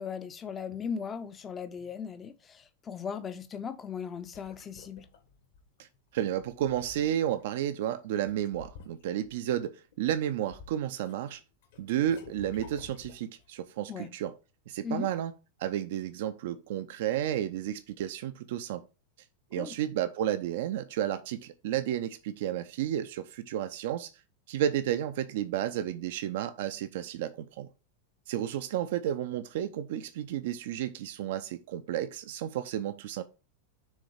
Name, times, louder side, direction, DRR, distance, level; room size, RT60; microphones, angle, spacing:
voice 1, 0.0-5.1 13.9-14.1 14.8-15.1 19.6-19.8, left 6 dB, 20° left, 0.6 m, -38 dB
sound 1, 4.0-5.8 6.3-7.4 8.3-9.4 9.9-11.1 11.4-13.5, left 5 dB, 55° left, 1.4 m, -51 dB
voice 2, 6.1-11.4 11.8-14.3 14.7-15.3 15.6-18.8 19.5-24.1 24.5-27.7 28.3-33.2, right 11 dB, 55° right, 0.5 m, -32 dB
6.4 x 3.8 x 5.0 m
figure-of-eight pair, 90°, 0 cm